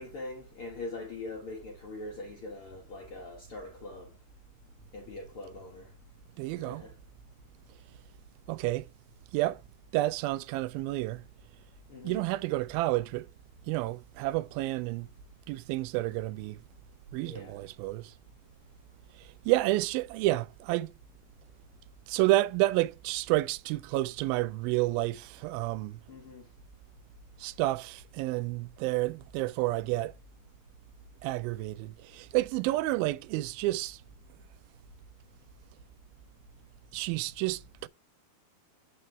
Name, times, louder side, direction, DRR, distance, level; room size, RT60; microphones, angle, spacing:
voice 1, 0.0-4.1 4.9-5.9 6.5-6.9 11.9-12.2 17.3-17.6 26.1-26.4, left 2 dB, 75° left, 1.2 m, -42 dB
voice 2, 6.4-6.8 8.5-8.9 9.3-9.6 9.9-11.2 12.0-13.3 13.7-15.1 15.5-16.6 17.1-18.1 19.2-20.9 22.1-26.0 27.4-30.1 31.2-34.0 36.9-37.9, right 18 dB, 80° right, 2.3 m, -30 dB
8.7 x 4.4 x 3.3 m
omnidirectional pair, 4.4 m